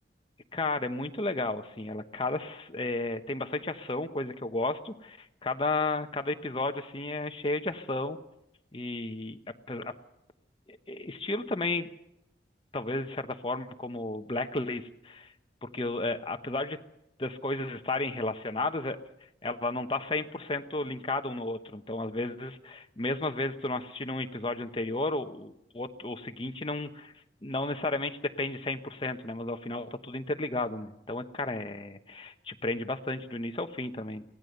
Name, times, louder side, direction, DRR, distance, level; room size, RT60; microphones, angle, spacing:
voice 1, 0.5-8.2 8.7-9.4 9.7-9.9 10.7-11.9 12.7-15.3 15.6-16.8 17.2-19.0 19.4-27.1 27.4-34.2, left 2 dB, 30° left, 7 dB, 1.1 m, -33 dB
24.0 x 17.5 x 6.7 m, 0.86 s
head